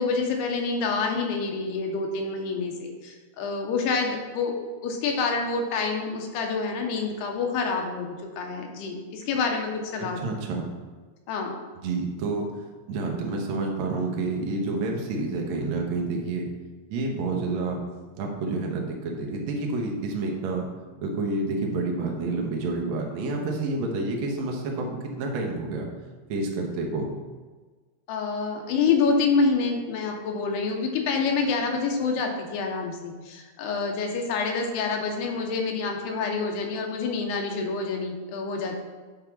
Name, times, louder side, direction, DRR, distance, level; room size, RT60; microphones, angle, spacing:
voice 1, 0.0-4.6 4.8-10.2 11.3-11.5 28.1-38.8, left 4 dB, 90° left, 2 dB, 3.0 m, -27 dB
voice 2, 10.0-10.7 11.8-12.5 12.9-16.5 16.9-17.8 18.2-20.7 21.0-25.9 26.3-27.1, right 3 dB, 70° right, 0 dB, 1.7 m, -29 dB
8.0 x 3.6 x 5.9 m, 1.4 s
omnidirectional pair, 4.6 m